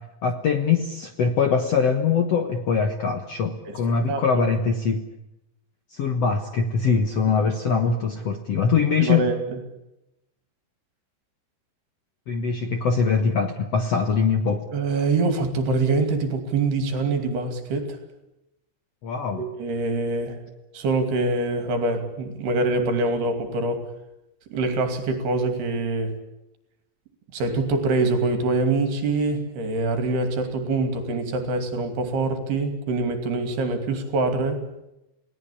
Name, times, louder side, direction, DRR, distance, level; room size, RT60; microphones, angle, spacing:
voice 1, 0.0-5.1 5.9-9.3 12.3-14.7 19.0-19.4, left 5 dB, 85° left, 7 dB, 1.3 m, -22 dB
voice 2, 4.1-4.4 9.0-9.6 14.7-18.0 19.4-20.4 20.7-23.9 24.5-26.2 27.3-34.6, right 3 dB, 70° right, 8 dB, 4.4 m, -24 dB
29.5 x 18.5 x 8.6 m, 0.91 s
omnidirectional pair, 5.0 m